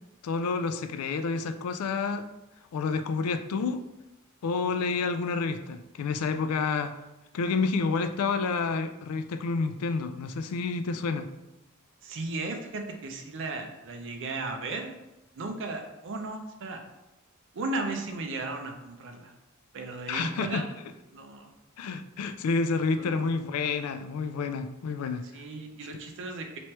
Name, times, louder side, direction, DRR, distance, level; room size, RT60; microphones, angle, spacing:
voice 1, 0.2-2.3 2.7-3.8 4.4-7.0 7.3-11.3 20.1-20.6 21.8-25.3, left 4 dB, 80° left, 10 dB, 0.3 m, -29 dB
voice 2, 12.0-14.9 15.3-16.8 17.5-19.3 19.7-20.7 21.1-21.5 23.0-23.3 25.3-26.6, right 3 dB, 60° right, 4 dB, 0.6 m, -35 dB
3.1 x 3.0 x 4.4 m, 0.97 s
head